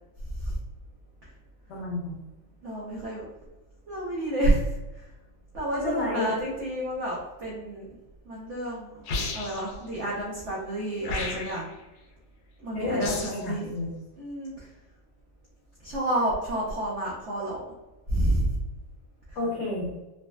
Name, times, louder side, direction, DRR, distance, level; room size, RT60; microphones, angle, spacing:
voice 1, 1.7-2.1 5.7-6.5 12.7-13.0 13.3-13.9 19.3-19.9, left 2 dB, 65° left, -7 dB, 1.5 m, -30 dB
voice 2, 2.6-3.2 3.8-5.1 5.5-7.9 8.2-9.0 9.3-11.7 12.6-13.7 14.2-14.7 15.8-17.6 18.1-18.5, right 1 dB, 85° right, -5 dB, 0.6 m, -29 dB
sound 1, 9.1-9.7 11.0-11.7 13.0-13.5, left 3 dB, 90° left, 1.4 m, -32 dB
3.9 x 2.1 x 2.2 m, 1.1 s
omnidirectional pair, 2.1 m